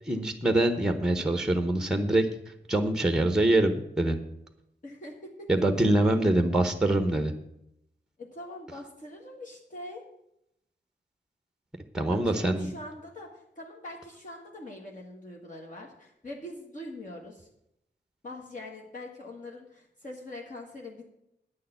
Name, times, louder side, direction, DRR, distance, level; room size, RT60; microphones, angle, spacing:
voice 1, 0.1-2.3 2.7-4.2 5.5-7.3 11.9-12.7, right 1 dB, 5° right, 8 dB, 0.9 m, -24 dB
voice 2, 4.8-5.5 8.2-10.0 12.1-17.5 18.2-21.0, left 1 dB, 45° left, -2 dB, 1.7 m, -43 dB
9.6 x 6.6 x 8.1 m, 0.80 s
wide cardioid pair, 145°, 19 cm